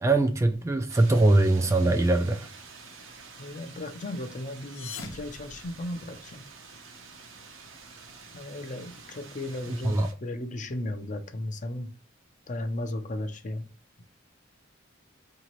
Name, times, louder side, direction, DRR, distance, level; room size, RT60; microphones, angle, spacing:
voice 1, 0.0-2.5 9.8-10.1, right 2 dB, 15° right, 0.3 m, -22 dB
sound 1, 0.9-10.1, right 4 dB, 70° right, 0.8 m, -48 dB
voice 2, 3.4-6.4 8.3-11.9 12.5-13.7, left 1 dB, 40° left, 0.5 m, -35 dB
sound 2, 4.5-6.4, left 4 dB, 80° left, 0.8 m, -43 dB
4.9 x 2.7 x 3.0 m
head